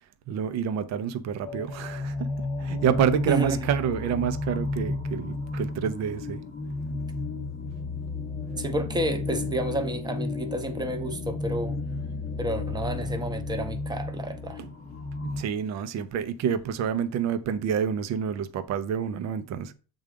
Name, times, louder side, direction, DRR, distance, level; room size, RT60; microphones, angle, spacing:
voice 1, 0.3-2.3 2.6-6.4 14.6-14.7 15.2-19.7, right 8 dB, 40° right, 0.8 m, -28 dB
sound 1, 1.4-15.4, left 3 dB, 20° left, 0.7 m, -33 dB
voice 2, 3.3-3.7 8.6-11.8 12.4-14.6, right 1 dB, 10° right, 1.0 m, -30 dB
7.1 x 3.8 x 5.2 m
supercardioid pair, 115°, 40 cm